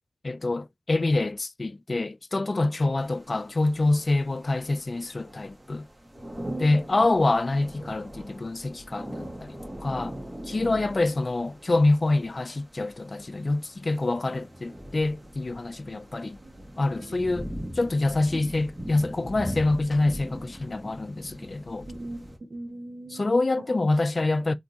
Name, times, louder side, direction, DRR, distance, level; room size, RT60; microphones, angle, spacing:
voice 1, 0.2-5.9 6.6-10.1 10.5-16.4 16.8-17.5 17.8-21.9 23.1-24.5, left 2 dB, 55° left, 0.3 m, -26 dB
sound 1, 3.0-22.4, equal, 30° right, 1.5 m, -41 dB
voice 2, 6.4-6.8 15.9-17.4 21.9-23.3 23.6-23.8, right 2 dB, 70° right, 0.6 m, -41 dB
3.6 x 2.7 x 2.8 m
cardioid pair, 40°, 0 cm